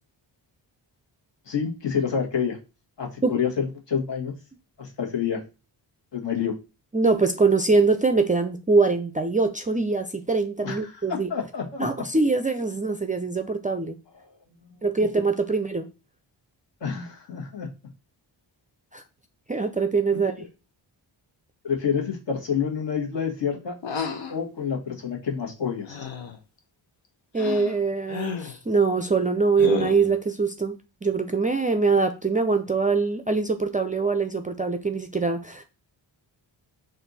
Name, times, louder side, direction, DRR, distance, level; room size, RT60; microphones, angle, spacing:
voice 1, 1.4-2.6 3.0-4.3 4.8-5.4 6.1-6.5 10.6-12.0 14.6-14.7 16.8-17.7 20.1-20.2 21.6-23.7 24.3-26.0, left 7 dB, 65° left, 1.4 m, -28 dB
voice 2, 6.9-11.3 11.8-14.0 14.8-15.9 18.9-19.0 19.5-20.3 27.3-35.6, right 4 dB, 20° right, 0.4 m, -23 dB
sound 1, 23.8-24.4 25.9-26.4 27.4-27.7 28.1-28.6 29.6-30.1, left 6 dB, 85° left, 0.8 m, -31 dB
4.3 x 2.6 x 4.0 m
cardioid pair, 70°, 46 cm